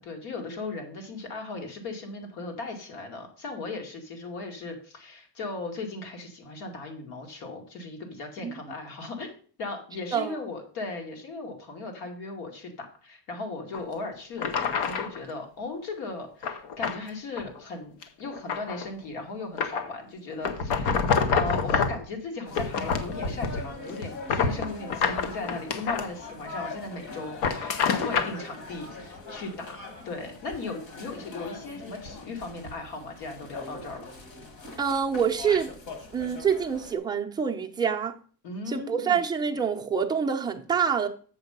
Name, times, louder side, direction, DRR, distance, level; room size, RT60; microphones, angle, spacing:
voice 1, 0.0-9.3 9.6-17.9 18.2-34.0 38.4-39.2, left 3 dB, 70° left, 2.5 m, -37 dB
sound 1, 13.7-13.8 14.4-15.2 16.4-17.0 17.4-17.6 18.0-18.9 19.6-19.9 20.4-22.0 22.5-23.7 24.0-26.1 27.2-28.4, left 5 dB, 85° left, 1.2 m, -27 dB
sound 2, 22.4-37.0, left 3 dB, 50° left, 2.0 m, -42 dB
voice 2, 34.8-35.7 36.1-38.2 38.7-41.1, right 7 dB, 10° right, 0.5 m, -26 dB
7.2 x 6.8 x 5.3 m
cardioid pair, 180°, 39 cm